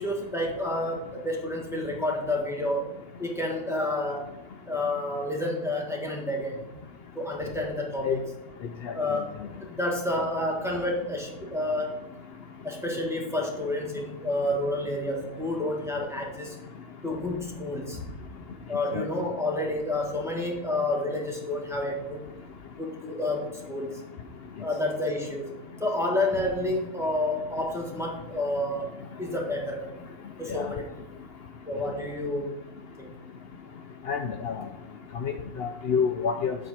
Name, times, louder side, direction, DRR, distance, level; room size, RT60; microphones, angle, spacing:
voice 1, 0.0-2.8 3.2-4.3 4.7-6.6 7.1-8.2 8.9-9.3 9.7-12.0 12.6-16.6 17.0-18.1 18.7-22.2 22.8-24.0 24.6-25.5 25.8-28.9 29.2-29.9 30.4-31.0 31.7-32.5 33.0-33.1, left 1 dB, ahead, -2 dB, 1.3 m, -29 dB
voice 2, 34.1-34.6 35.2-36.6, left 6 dB, 80° left, 6 dB, 0.5 m, -28 dB
7.5 x 4.5 x 5.7 m, 0.96 s
omnidirectional pair, 1.6 m